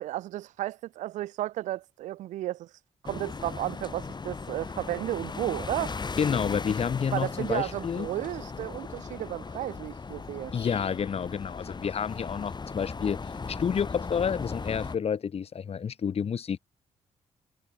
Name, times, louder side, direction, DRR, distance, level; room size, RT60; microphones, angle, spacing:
voice 1, 0.0-2.7 3.0-6.0 7.1-10.5, right 14 dB, 90° right, 0.5 m, -33 dB
sound 1, 3.0-15.0, left 4 dB, 35° left, 4.5 m, -37 dB
voice 2, 6.2-8.1 10.5-16.6, left 7 dB, 55° left, 2.6 m, -29 dB
cardioid pair, 75°, 12 cm